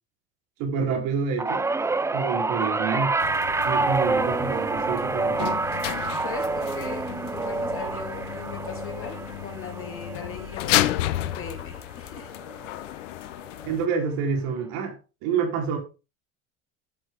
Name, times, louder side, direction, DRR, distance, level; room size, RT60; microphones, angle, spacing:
voice 1, 0.6-1.6 2.1-3.3 3.6-5.5 13.6-15.8, right 6 dB, 70° right, 4.4 m, -28 dB
sound 1, 1.4-11.8 12.2-12.6 13.7-13.8, right 3 dB, 10° right, 0.4 m, -28 dB
sound 2, 3.2-13.9, left 15 dB, 90° left, 0.9 m, -32 dB
voice 2, 6.2-7.0 7.3-12.3, left 6 dB, 35° left, 2.7 m, -39 dB
12.5 x 7.8 x 3.8 m
supercardioid pair, 95°, 36 cm